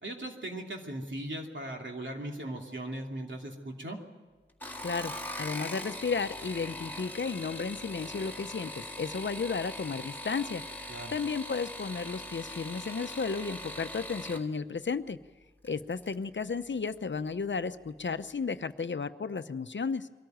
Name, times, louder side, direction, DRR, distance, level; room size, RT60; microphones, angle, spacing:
voice 1, 0.0-4.0 10.9-11.1, right 1 dB, 65° right, 1 dB, 2.9 m, -38 dB
sound 1, 4.5-14.4 15.6-16.1 16.6-17.0 17.3-17.4, left 1 dB, 10° left, 2.0 m, -41 dB
voice 2, 4.8-15.2 15.6-20.1, left 5 dB, 65° left, 11 dB, 0.7 m, -33 dB
23.0 x 13.5 x 9.3 m, 1.3 s
wide cardioid pair, 70°, 21 cm